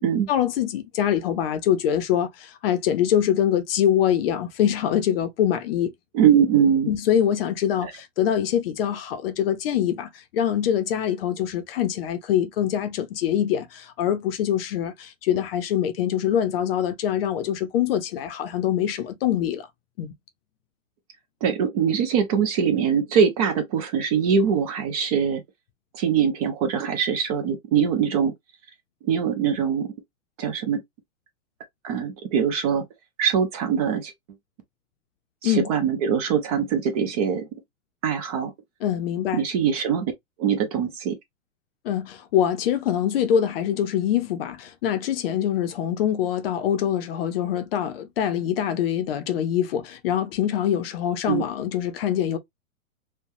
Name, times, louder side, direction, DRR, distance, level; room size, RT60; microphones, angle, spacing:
voice 1, 0.3-5.9 6.9-19.7 20.0-20.1 35.4-35.7 38.8-39.4 41.8-52.4, left 10 dB, 45° left, 0.7 m, -24 dB
voice 2, 6.1-7.0 7.8-7.9 21.4-25.4 25.9-28.3 29.0-29.9 30.4-30.8 31.8-32.8 33.2-34.1 35.4-37.5 38.0-38.5 39.3-40.1 40.4-41.2 51.3-51.4, right 7 dB, 30° right, 0.5 m, -22 dB
3.2 x 2.2 x 2.6 m
hypercardioid pair, 140°, 41 cm